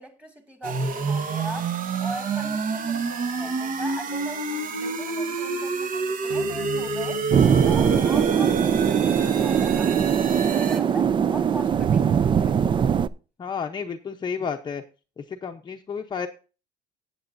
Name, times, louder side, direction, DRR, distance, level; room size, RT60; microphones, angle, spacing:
voice 1, 0.0-12.6, right 1 dB, 5° right, 2.1 m, -40 dB
sound 1, 0.6-10.8, right 4 dB, 50° right, 1.3 m, -28 dB
sound 2, 6.3-10.9, left 13 dB, 80° left, 0.6 m, -40 dB
sound 3, 7.3-13.1, right 7 dB, 25° right, 0.4 m, -21 dB
voice 2, 13.4-14.8 15.2-16.3, left 6 dB, 25° left, 0.7 m, -31 dB
16.5 x 7.9 x 2.6 m
cardioid pair, 130°, 18 cm